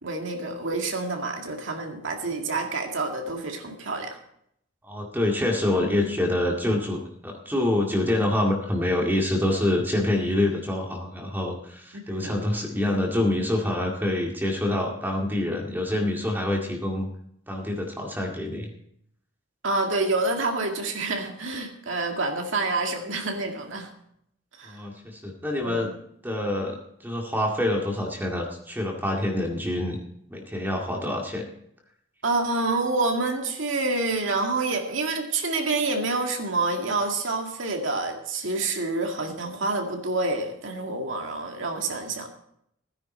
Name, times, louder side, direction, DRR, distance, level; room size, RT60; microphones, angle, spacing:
voice 1, 0.0-4.2 12.1-12.3 19.6-23.9 24.6-24.8 25.6-25.9 32.2-42.3, right 3 dB, 70° right, 3 dB, 2.1 m, -27 dB
voice 2, 4.8-17.1 17.5-18.7 24.6-25.9 26.2-26.8 27.0-30.0 30.3-31.5, left 1 dB, 10° right, 0 dB, 2.1 m, -26 dB
16.5 x 10.5 x 4.4 m, 0.71 s
head